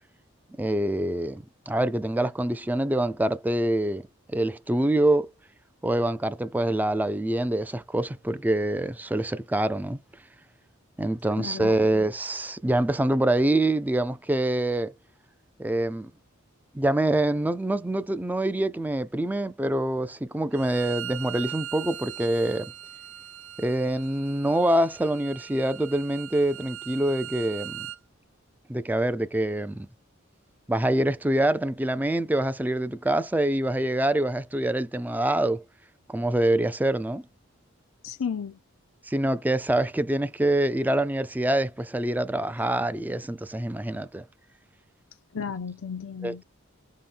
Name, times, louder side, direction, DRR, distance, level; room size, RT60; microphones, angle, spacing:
voice 1, 0.6-4.0 4.3-5.3 5.8-10.0 11.0-14.9 15.6-16.1 16.7-22.7 23.6-27.8 28.7-29.9 30.7-35.6 36.1-37.2 39.1-44.2 46.2-46.4, right 1 dB, 10° right, 0.3 m, -25 dB
voice 2, 11.4-11.8 38.0-38.6 45.3-46.4, left 6 dB, 75° left, 0.5 m, -33 dB
Bowed string instrument, 20.5-28.0, right 12 dB, 85° right, 0.7 m, -40 dB
5.5 x 2.1 x 3.2 m
head